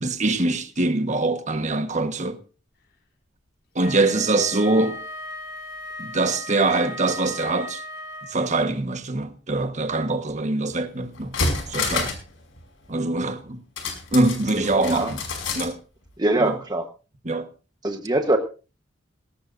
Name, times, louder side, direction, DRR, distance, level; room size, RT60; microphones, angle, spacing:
voice 1, 0.0-2.4 3.7-5.0 6.0-7.8 8.3-11.3 11.7-12.1 12.9-13.6 14.1-15.2 15.5-15.8 16.4-16.6 17.2-17.5, right 2 dB, 40° right, 1.4 m, -23 dB
Wind instrument woodwind instrument, 3.8-8.7, left 1 dB, 55° left, 3.6 m, -37 dB
sound 1, 10.7-10.8 11.2-12.3 12.6-12.7 13.8-15.7 16.1-16.2, left 3 dB, 80° left, 5.3 m, -28 dB
voice 2, 16.2-16.8 17.8-18.4, right 2 dB, 20° right, 1.2 m, -22 dB
19.0 x 18.0 x 2.6 m
head